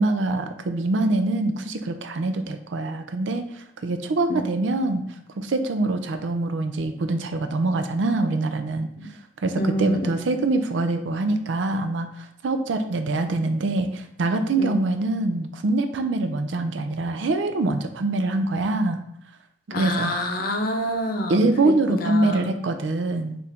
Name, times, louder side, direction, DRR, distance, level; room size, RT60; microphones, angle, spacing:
voice 1, 0.0-5.0 5.4-8.9 9.4-19.0 19.8-20.1 21.3-23.4, right 2 dB, 70° right, 7 dB, 0.5 m, -24 dB
voice 2, 9.6-10.1 14.5-14.8 19.7-21.4 21.9-22.5, left 1 dB, 50° left, 3 dB, 0.6 m, -27 dB
4.6 x 2.5 x 3.5 m, 0.77 s
head